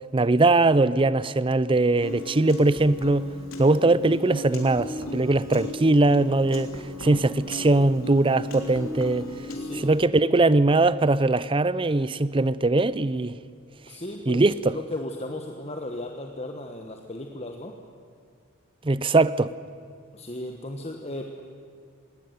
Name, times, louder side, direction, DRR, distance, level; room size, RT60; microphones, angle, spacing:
voice 1, 0.1-3.3 3.6-6.7 7.0-9.3 9.8-13.4 14.3-14.8 18.8-19.5, right 2 dB, 25° right, 0.5 m, -21 dB
Piano, 2.0-10.0, left 2 dB, 85° left, 3.4 m, -36 dB
voice 2, 9.5-9.9 13.8-17.7 20.1-21.4, left 1 dB, 30° left, 1.3 m, -36 dB
19.5 x 18.5 x 9.4 m
head